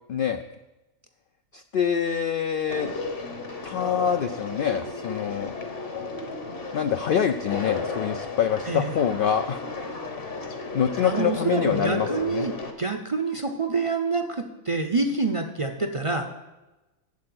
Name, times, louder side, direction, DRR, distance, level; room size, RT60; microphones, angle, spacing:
voice 1, 0.1-0.4 1.5-2.9 3.6-5.5 6.7-9.6 10.7-12.5, left 8 dB, 65° left, 8 dB, 0.5 m, -25 dB
Conversation, 2.7-12.7, left 4 dB, 45° left, 1.4 m, -34 dB
voice 2, 11.0-12.5 12.8-16.3, right 3 dB, 35° right, 5 dB, 0.6 m, -27 dB
8.6 x 7.7 x 7.8 m, 1.1 s
omnidirectional pair, 1.4 m